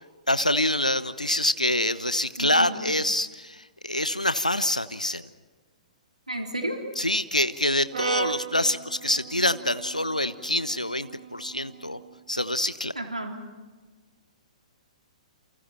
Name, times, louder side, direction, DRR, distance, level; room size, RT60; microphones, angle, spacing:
voice 1, 0.3-5.2 7.0-12.0 12.3-12.9, left 1 dB, 85° left, 13 dB, 1.0 m, -26 dB
voice 2, 2.4-2.7 6.3-6.8 13.0-13.4, right 1 dB, 80° right, 2 dB, 3.9 m, -31 dB
Brass instrument, 7.9-12.2, right 7 dB, 60° right, 2.1 m, -37 dB
29.5 x 29.0 x 4.5 m, 1.3 s
figure-of-eight pair, 115°, 4 cm